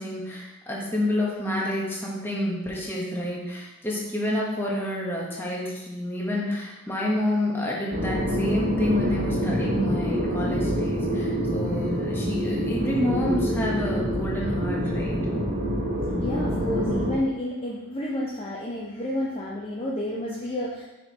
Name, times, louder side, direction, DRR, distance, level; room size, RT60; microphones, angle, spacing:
voice 1, 0.0-15.2, left 1 dB, 10° left, -4 dB, 1.2 m, -29 dB
sound 1, 7.9-17.1, equal, 45° right, 1.4 m, -26 dB
voice 2, 16.2-20.8, left 1 dB, 25° left, -5 dB, 0.6 m, -30 dB
5.6 x 4.4 x 4.1 m, 1.0 s
head